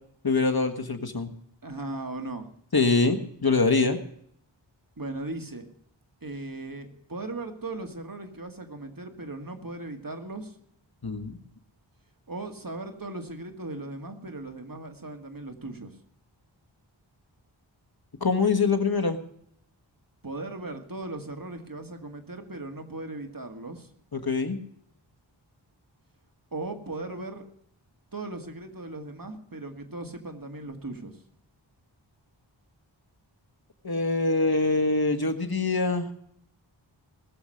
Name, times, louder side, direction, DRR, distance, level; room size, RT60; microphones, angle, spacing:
voice 1, 0.2-1.3 2.7-4.0 11.0-11.4 18.2-19.2 24.1-24.6 33.8-36.1, left 3 dB, 50° left, 6 dB, 1.6 m, -24 dB
voice 2, 1.6-2.5 5.0-5.7 6.2-10.6 12.3-16.0 20.2-23.9 26.5-27.4 28.1-31.2, right 2 dB, 45° right, 6 dB, 2.1 m, -38 dB
20.0 x 7.3 x 6.4 m, 0.69 s
wide cardioid pair, 45°, 46 cm